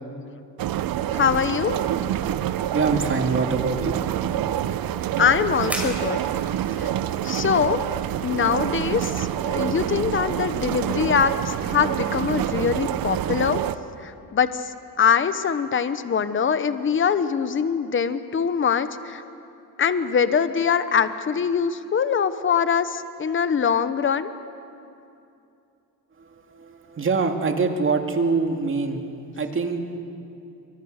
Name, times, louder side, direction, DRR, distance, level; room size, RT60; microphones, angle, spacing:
sound 1, 0.6-13.8, right 11 dB, 70° right, 0.9 m, -27 dB
voice 1, 1.1-1.8 5.2-6.2 6.8-6.9 7.2-7.8 8.2-13.6 14.0-14.7 15.0-19.2 19.8-24.3, left 7 dB, 35° left, 11 dB, 1.1 m, -23 dB
sound 2, 2.2-10.7, right 1 dB, 5° right, 5.5 m, -43 dB
voice 2, 2.6-4.0 26.2-29.0 29.3-30.0, right 4 dB, 35° right, 4 dB, 2.3 m, -25 dB
27.5 x 24.5 x 6.6 m, 2.6 s
cardioid pair, 120°, 37 cm